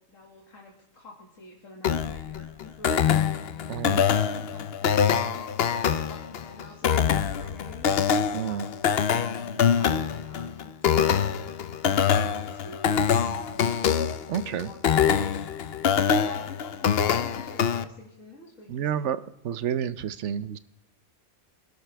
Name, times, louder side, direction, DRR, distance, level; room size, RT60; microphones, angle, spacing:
voice 1, 0.1-3.2 3.9-11.3 11.8-13.7 14.4-15.4 15.8-19.2, left 2 dB, 85° left, -1 dB, 2.6 m, -48 dB
sound 1, 1.8-17.8, left 7 dB, 55° left, 0.9 m, -24 dB
voice 2, 3.7-4.0 8.3-8.6 14.3-14.7 18.7-19.2 19.4-20.6, right 9 dB, 70° right, 14 dB, 1.0 m, -29 dB
25.5 x 12.0 x 3.4 m, 0.86 s
omnidirectional pair, 1.3 m